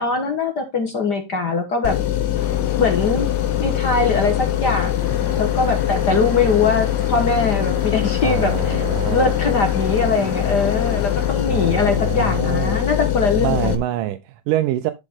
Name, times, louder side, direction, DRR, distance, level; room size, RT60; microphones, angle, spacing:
voice 1, 0.0-1.9 2.8-3.3 3.6-4.9 5.4-8.8 9.1-13.7, left 4 dB, 45° left, 1.4 m, -21 dB
sound 1, 1.8-13.8, left 12 dB, 90° left, 2.8 m, -22 dB
sound 2, 2.3-11.4, left 6 dB, 60° left, 1.3 m, -36 dB
sound 3, 5.0-12.4, left 1 dB, 25° left, 3.0 m, -37 dB
voice 2, 8.2-9.3 11.5-12.8 13.4-14.9, right 14 dB, 85° right, 2.3 m, -25 dB
11.5 x 5.3 x 3.7 m
omnidirectional pair, 3.7 m